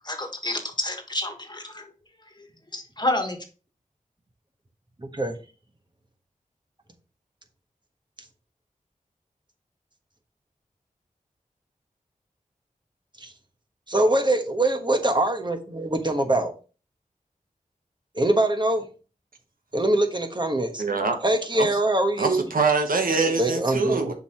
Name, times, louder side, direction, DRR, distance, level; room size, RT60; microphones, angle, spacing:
voice 1, 0.0-1.8 2.7-3.4, left 1 dB, 30° left, 5 dB, 1.5 m, -29 dB
voice 2, 5.0-5.4 13.2-13.3 13.9-16.5 18.1-18.9 19.7-20.8 21.2-22.5 23.4-24.1, right 1 dB, 30° right, 5 dB, 1.2 m, -23 dB
voice 3, 20.8-21.2 21.6-21.7 22.2-24.1, right 4 dB, 75° right, 4 dB, 1.1 m, -24 dB
6.9 x 4.7 x 2.9 m, 0.35 s
cardioid pair, 40°, 14 cm